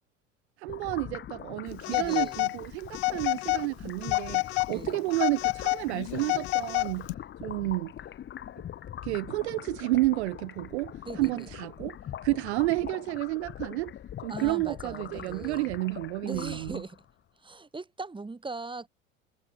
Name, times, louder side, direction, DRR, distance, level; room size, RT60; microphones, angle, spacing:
voice 1, 0.6-7.1 7.4-7.9 9.0-12.0 12.2-13.9 14.2-16.8, right 21 dB, 60° right, 0.5 m, -30 dB
sound 1, 0.7-17.1, left 10 dB, 30° left, 1.3 m, -42 dB
Telephone, 1.8-2.6 2.9-3.7 4.0-4.7 5.1-7.1, left 25 dB, 55° left, 0.8 m, -28 dB
voice 2, 1.8-2.4 4.7-5.0 11.0-11.5 14.3-15.7 16.2-17.0 17.4-18.9, right 3 dB, 15° right, 3.8 m, -40 dB
figure-of-eight pair, 70°, 38 cm